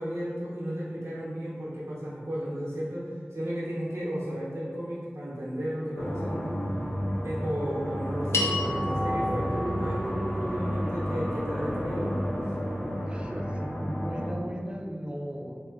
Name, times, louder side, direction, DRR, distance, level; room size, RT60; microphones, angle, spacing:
voice 1, 0.0-6.6 7.2-12.2, equal, 85° right, -7 dB, 0.9 m, -34 dB
sound 1, 6.0-14.3, equal, 40° left, 1.0 m, -31 dB
sound 2, 8.3-12.8, left 2 dB, 90° left, 0.4 m, -35 dB
voice 2, 13.1-15.7, equal, 25° right, 1 dB, 0.4 m, -37 dB
3.7 x 2.8 x 2.3 m, 2.1 s
wide cardioid pair, 50°, 4 cm